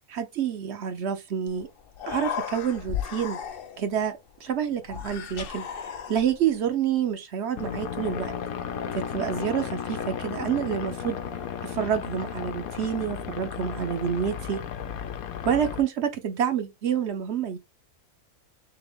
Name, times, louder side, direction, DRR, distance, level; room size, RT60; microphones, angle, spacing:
voice 1, 0.1-1.7 2.1-3.4 3.8-4.1 4.4-5.7 6.1-8.3 8.9-11.2 11.6-14.6 15.4-17.6, right 8 dB, 60° right, 0.9 m, -28 dB
Human voice, 1.5-1.6 1.9-3.9 4.8-6.5, left 8 dB, 55° left, 0.6 m, -35 dB
sound 1, 7.6-15.8, left 8 dB, 85° left, 1.1 m, -34 dB
3.5 x 3.4 x 3.5 m
omnidirectional pair, 1.5 m